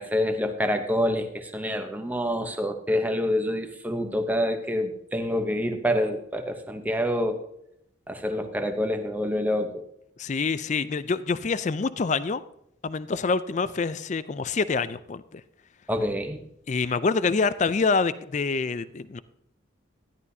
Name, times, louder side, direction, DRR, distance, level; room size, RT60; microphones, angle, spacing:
voice 1, 0.0-7.4 8.1-9.8 15.9-16.5, equal, 10° right, 6 dB, 0.8 m, -27 dB
voice 2, 10.2-12.4 12.8-15.4 16.7-19.2, left 4 dB, 35° left, 15 dB, 0.4 m, -26 dB
13.5 x 11.0 x 2.7 m, 0.76 s
head